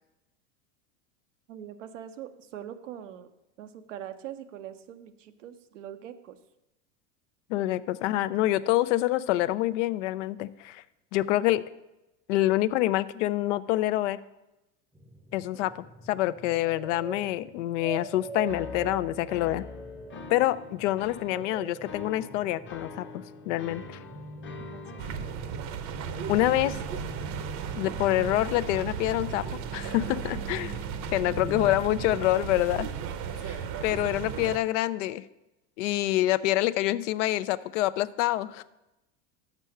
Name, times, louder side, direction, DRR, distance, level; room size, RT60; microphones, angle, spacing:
voice 1, 1.5-3.3 3.6-6.4 8.6-8.7 24.7-25.0, right 10 dB, 90° right, 10 dB, 0.7 m, -42 dB
voice 2, 7.5-10.8 11.1-11.6 12.3-14.2 15.3-19.6 20.3-24.0 26.3-26.8 27.8-29.4 29.7-30.8 31.1-32.9 33.4-35.3 35.8-38.6, left 15 dB, 75° left, 16 dB, 0.5 m, -26 dB
sound 1, 14.9-31.8, right 2 dB, 5° right, 0.6 m, -43 dB
sound 2, 18.5-25.3, left 4 dB, 30° left, 0.9 m, -44 dB
sound 3, 25.0-34.6, right 7 dB, 50° right, 0.7 m, -35 dB
6.2 x 5.5 x 6.4 m, 0.96 s
hypercardioid pair, 100°, 36 cm